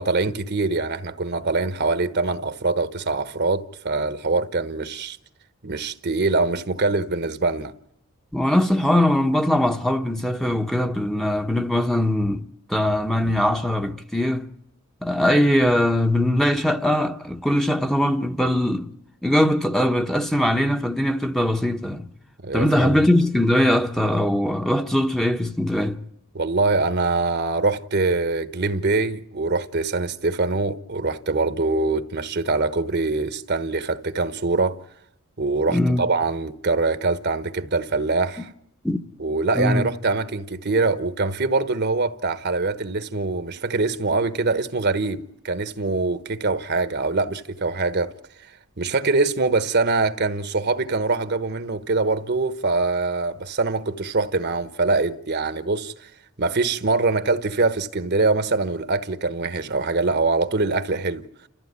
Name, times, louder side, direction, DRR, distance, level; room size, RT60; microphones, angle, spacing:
voice 1, 0.0-5.2 5.6-7.7 22.4-23.0 26.3-34.8 35.4-38.5 39.2-48.1 48.8-56.1 56.4-61.3, right 3 dB, 50° right, 1.2 m, -23 dB
voice 2, 8.3-14.5 15.0-18.9 19.2-22.1 22.5-26.0 35.7-36.1 38.8-39.0 39.6-39.9, left 1 dB, ahead, 1.1 m, -21 dB
29.0 x 14.5 x 9.7 m
head